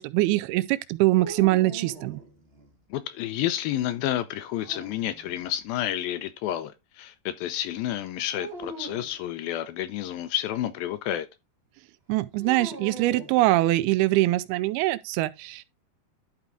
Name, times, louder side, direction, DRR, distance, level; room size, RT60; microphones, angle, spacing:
voice 1, 0.0-2.2 12.1-15.6, right 18 dB, 80° right, 2.4 m, -23 dB
sound 1, 1.2-2.7 4.4-5.5 8.4-9.2 12.4-14.0, right 2 dB, 55° right, 0.6 m, -42 dB
voice 2, 2.9-11.3, left 12 dB, 80° left, 2.2 m, -30 dB
11.5 x 4.7 x 3.7 m
omnidirectional pair, 4.7 m